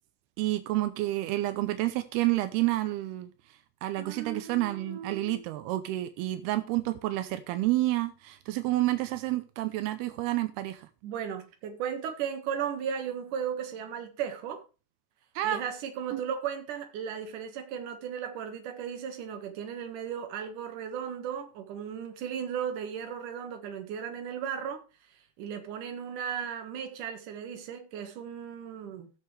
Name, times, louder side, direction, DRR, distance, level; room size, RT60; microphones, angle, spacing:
voice 1, 0.4-3.3 3.8-10.9 15.4-15.6 16.1-16.2, right 16 dB, 85° right, 2.7 m, -29 dB
voice 2, 4.0-5.4 11.0-14.6 15.4-24.8 25.4-29.1, right 8 dB, 60° right, 2.9 m, -36 dB
17.0 x 6.6 x 3.3 m
omnidirectional pair, 4.6 m